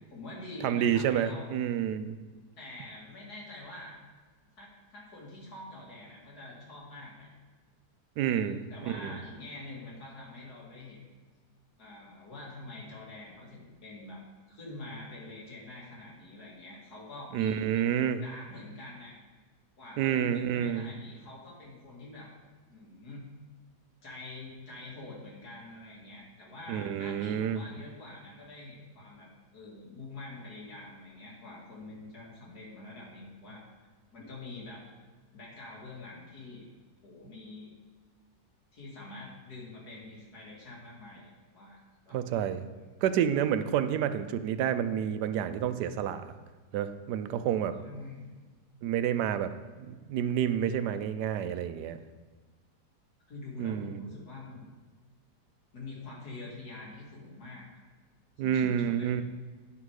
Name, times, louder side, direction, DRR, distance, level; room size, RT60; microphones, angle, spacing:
voice 1, 0.1-1.7 2.6-4.0 4.6-7.3 8.3-11.0 11.8-14.2 14.5-19.2 19.8-22.3 22.7-23.2 24.0-29.3 29.5-33.6 34.1-34.8 35.3-36.6 37.0-37.7 38.7-41.8 42.1-42.2 42.5-42.7 47.8-48.4 53.3-54.7 55.7-57.8 58.4-59.1, left 2 dB, 65° left, -4 dB, 2.7 m, -45 dB
voice 2, 0.6-2.2 8.2-8.6 9.0-9.2 17.3-18.2 20.0-20.9 26.7-27.6 42.1-42.6 43.0-46.2 46.7-47.8 48.8-49.5 49.9-52.0 53.6-54.0 58.4-59.2, right 9 dB, 80° right, 11 dB, 1.1 m, -29 dB
9.6 x 5.9 x 4.8 m, 1.4 s
omnidirectional pair, 1.8 m